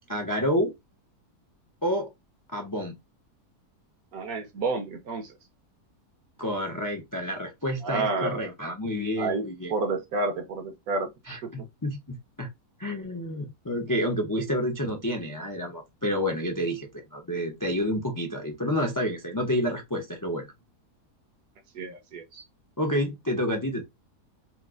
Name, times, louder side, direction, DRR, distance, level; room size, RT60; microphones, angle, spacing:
voice 1, 0.1-0.7 1.8-2.1 2.5-3.0 6.4-9.7 11.3-12.5 12.8-20.5 22.8-23.8, equal, 30° left, 0.3 m, -29 dB
voice 2, 4.1-5.3 7.8-8.4 9.2-11.1 11.4-11.5 21.7-22.4, right 3 dB, 65° right, 1.3 m, -30 dB
4.2 x 2.1 x 2.4 m
omnidirectional pair, 1.7 m